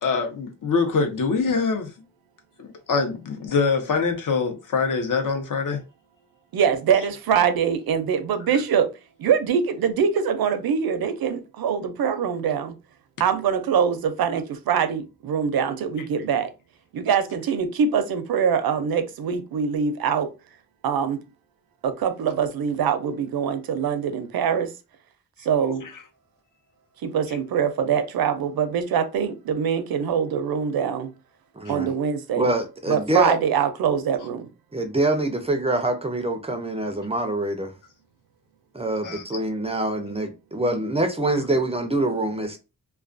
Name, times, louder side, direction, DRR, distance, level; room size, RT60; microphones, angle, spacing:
voice 1, 0.0-1.9 2.6-5.8 39.0-39.2, left 4 dB, 60° left, 0.7 m, -24 dB
voice 2, 6.5-8.9 9.2-12.8 13.2-16.5 16.9-20.3 20.8-21.2 21.8-24.7 25.4-25.8 27.0-31.1 31.7-32.5 32.9-34.5, right 7 dB, 75° right, 0.5 m, -23 dB
voice 3, 31.6-31.9 32.4-33.4 34.7-37.7 38.7-42.6, right 2 dB, 20° right, 0.3 m, -25 dB
2.3 x 2.2 x 2.5 m
wide cardioid pair, 135°, 36 cm